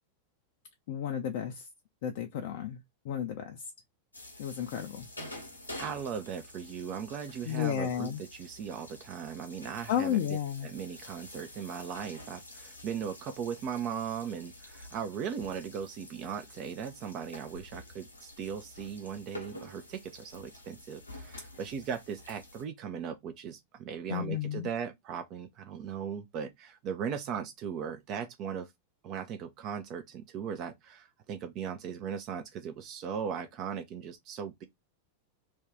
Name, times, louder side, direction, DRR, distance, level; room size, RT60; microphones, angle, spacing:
voice 1, 0.9-1.7 2.0-2.8 3.0-3.6 4.4-5.1 7.4-8.2 9.9-10.7 24.1-24.7, left 10 dB, 50° left, 0.5 m, -32 dB
sound 1, 4.1-22.6, left 1 dB, 80° left, 0.9 m, -49 dB
voice 2, 5.8-10.4 10.6-28.7 29.0-34.6, right 7 dB, 40° right, 0.5 m, -38 dB
2.6 x 2.3 x 3.5 m
figure-of-eight pair, 90°, 0 cm